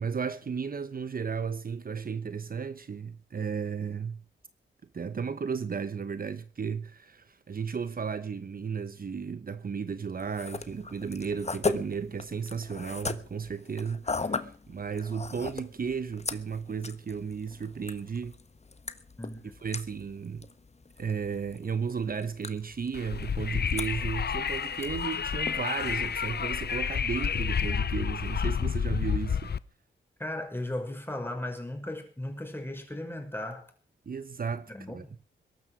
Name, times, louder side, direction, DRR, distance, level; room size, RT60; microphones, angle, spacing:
voice 1, 0.0-4.2 4.9-18.4 19.6-20.5 21.0-29.5 34.1-35.0, right 6 dB, 50° right, 1.0 m, -34 dB
sound 1, 10.2-26.8, left 4 dB, 35° left, 1.4 m, -39 dB
voice 2, 19.2-19.5 30.2-33.7 34.7-35.2, left 1 dB, 10° left, 5.9 m, -36 dB
Wind, 22.9-29.6, left 7 dB, 55° left, 0.7 m, -30 dB
22.0 x 12.5 x 5.0 m
wide cardioid pair, 90°, 20 cm